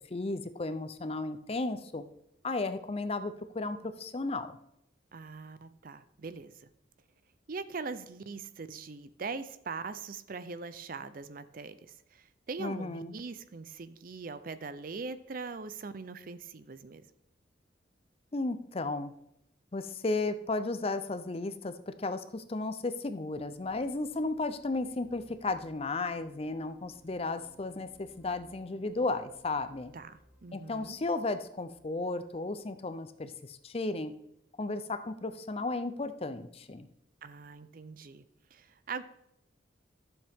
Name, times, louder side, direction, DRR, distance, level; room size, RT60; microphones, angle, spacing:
voice 1, 0.1-2.0 2.4-4.5 12.6-13.1 18.3-19.1 19.7-29.9 30.5-34.1 34.6-36.9, left 3 dB, 30° left, 11 dB, 0.5 m, -34 dB
voice 2, 5.1-6.7 7.5-17.0 29.9-31.0 37.2-38.2 38.5-39.0, right 4 dB, 50° right, 13 dB, 0.5 m, -41 dB
sound 1, 23.3-33.1, right 1 dB, 5° right, 0.9 m, -62 dB
12.0 x 7.1 x 3.6 m, 0.79 s
head